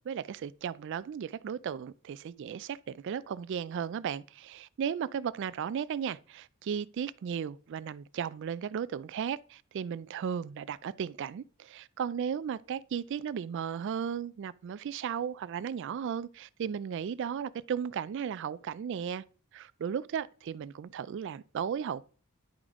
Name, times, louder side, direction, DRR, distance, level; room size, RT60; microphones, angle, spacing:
voice 1, 0.1-19.2 19.5-22.1, right 7 dB, 60° right, 0.3 m, -35 dB
10.5 x 4.9 x 3.6 m
head